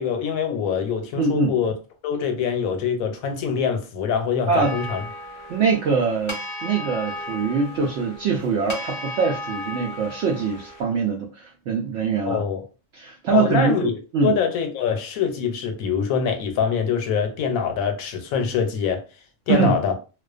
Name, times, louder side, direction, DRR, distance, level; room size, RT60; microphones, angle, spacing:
voice 1, 0.0-1.7 2.0-5.0 12.3-12.6 13.3-19.0 19.5-19.9, left 7 dB, 80° left, 1.0 m, -24 dB
voice 2, 1.2-1.5 4.5-4.7 5.5-12.4 12.9-14.4 19.5-19.8, right 5 dB, 65° right, 0.7 m, -23 dB
sound 1, 4.6-10.8, left 1 dB, 45° left, 0.4 m, -35 dB
2.4 x 2.2 x 2.3 m
omnidirectional pair, 1.4 m